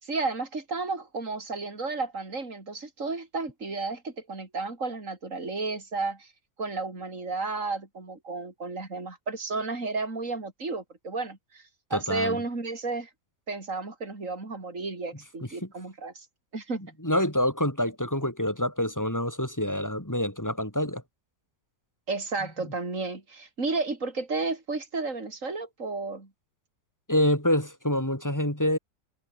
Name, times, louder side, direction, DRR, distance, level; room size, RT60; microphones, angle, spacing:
voice 1, 0.0-6.3 6.6-11.6 11.9-13.1 13.5-16.3 16.5-16.8 22.1-26.3, right 3 dB, 45° right, 4.7 m, -32 dB
voice 2, 11.9-12.4 15.6-15.7 17.0-21.0 27.1-28.8, left 1 dB, 10° left, 5.6 m, -26 dB
omnidirectional pair, 1.8 m